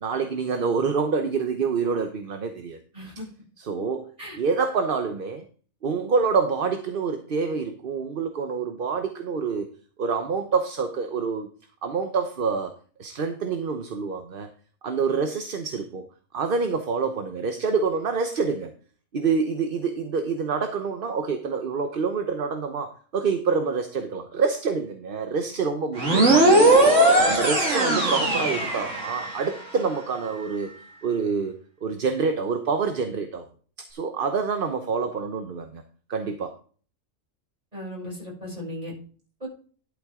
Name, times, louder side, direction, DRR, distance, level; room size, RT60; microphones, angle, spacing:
voice 1, 0.0-2.8 3.6-4.1 4.4-5.4 5.8-9.7 10.0-11.5 11.8-12.7 13.0-14.5 14.8-16.0 16.3-18.7 19.1-26.5 27.2-30.7 31.0-31.6 31.8-33.4 33.9-35.8 36.1-36.5, right 5 dB, 45° right, 6 dB, 1.0 m, -27 dB
voice 2, 2.9-3.3 4.2-4.4 37.7-38.9 39.4-39.5, equal, 30° right, -4 dB, 6.7 m, -36 dB
sound 1, 26.0-29.5, right 1 dB, 65° right, 2.3 m, -19 dB
11.5 x 7.8 x 3.7 m, 0.41 s
omnidirectional pair, 1.4 m